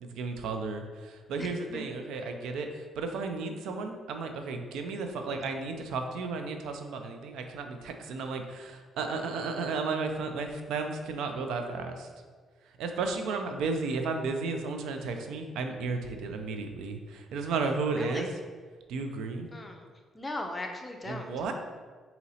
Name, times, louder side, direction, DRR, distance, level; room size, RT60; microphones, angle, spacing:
voice 1, 0.0-12.1 12.8-18.3 18.9-19.5 21.1-21.5, right 4 dB, 85° right, 5 dB, 0.4 m, -33 dB
voice 2, 1.4-1.9 18.0-18.3 19.5-19.9 20.1-21.3, left 2 dB, 20° left, 3 dB, 0.6 m, -38 dB
4.0 x 2.8 x 4.1 m, 1.5 s
cardioid pair, 90°, 0 cm